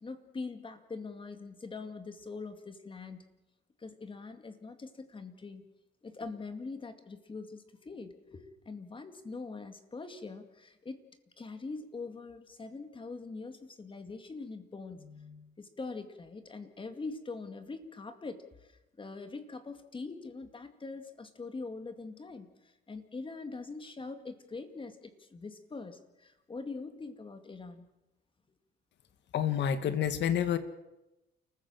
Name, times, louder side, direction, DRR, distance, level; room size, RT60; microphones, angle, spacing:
voice 1, 0.0-3.2 3.8-5.7 6.0-11.0 11.4-18.4 19.0-22.5 22.9-27.9, left 3 dB, 25° left, 8 dB, 2.3 m, -43 dB
voice 2, 29.3-30.6, left 9 dB, 70° left, 12 dB, 1.7 m, -28 dB
29.0 x 15.0 x 7.4 m, 0.97 s
cardioid pair, 105°, 19 cm